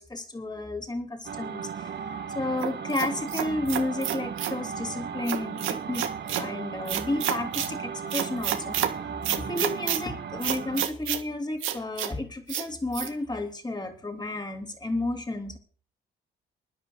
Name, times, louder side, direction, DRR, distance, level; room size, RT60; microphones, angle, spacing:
voice 1, 0.0-1.9 2.3-6.0 6.3-8.8 9.3-15.6, left 2 dB, 20° left, 4 dB, 3.2 m, -32 dB
sound 1, 1.2-10.9, right 7 dB, 60° right, 1.7 m, -36 dB
sound 2, 2.6-4.6 5.3-6.5 6.9-7.7 8.1-8.9 9.2-10.0 10.4-11.2 11.6-12.1 12.5-12.7 12.9-13.1, right 11 dB, 85° right, 1.6 m, -29 dB
10.5 x 10.0 x 6.6 m, 0.41 s
cardioid pair, 90°, 20 cm